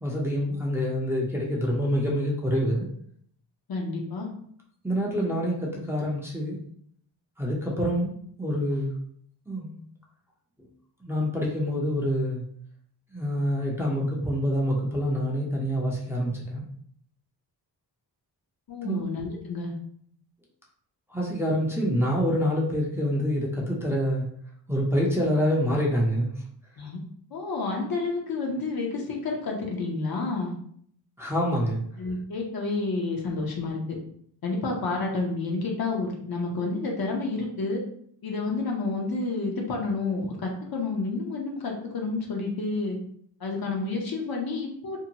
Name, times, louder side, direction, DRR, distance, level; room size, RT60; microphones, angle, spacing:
voice 1, 0.0-2.9 4.8-6.6 7.4-8.9 9.5-9.8 10.6-10.7 11.0-12.4 13.1-16.6 18.8-19.0 21.1-24.2 24.7-26.3 31.2-31.8, equal, 5° right, -4 dB, 0.6 m, -26 dB
voice 2, 3.7-4.3 18.7-19.7 26.8-27.0 27.3-30.5 32.0-34.0 34.4-37.8 38.2-43.0 43.4-45.0, left 3 dB, 55° left, 0 dB, 0.8 m, -30 dB
2.7 x 2.1 x 2.8 m, 0.63 s
cardioid pair, 75°, 43 cm